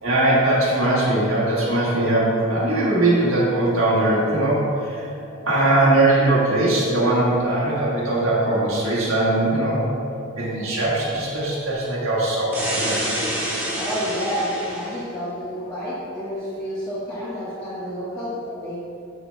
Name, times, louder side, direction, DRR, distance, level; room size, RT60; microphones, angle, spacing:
voice 1, 0.0-5.0 5.5-9.9 10.2-12.9, right 2 dB, 85° right, -7 dB, 1.5 m, -20 dB
sound 1, 12.5-15.0, right 1 dB, 10° right, 1.1 m, -27 dB
voice 2, 13.3-18.8, equal, 15° left, -11 dB, 1.1 m, -30 dB
7.8 x 6.7 x 2.2 m, 2.6 s
head